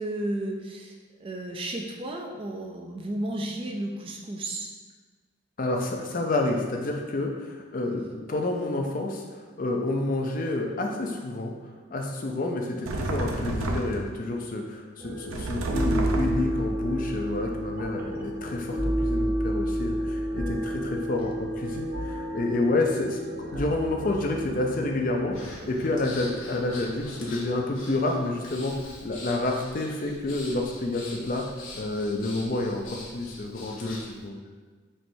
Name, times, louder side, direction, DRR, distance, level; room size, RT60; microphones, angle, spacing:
voice 1, 0.0-4.7, right 1 dB, 25° right, 2 dB, 0.3 m, -33 dB
voice 2, 5.6-11.5 11.9-28.8 29.0-31.4 31.7-34.4, left 2 dB, 40° left, 2 dB, 0.4 m, -29 dB
sound 1, 12.9-14.2 15.3-16.6, right 2 dB, 90° right, 0.4 m, -30 dB
sound 2, 15.0-27.6, equal, 45° right, 0.8 m, -31 dB
Breathing, 25.3-34.2, left 2 dB, 75° left, 0.9 m, -44 dB
4.4 x 3.1 x 2.6 m, 1.4 s
head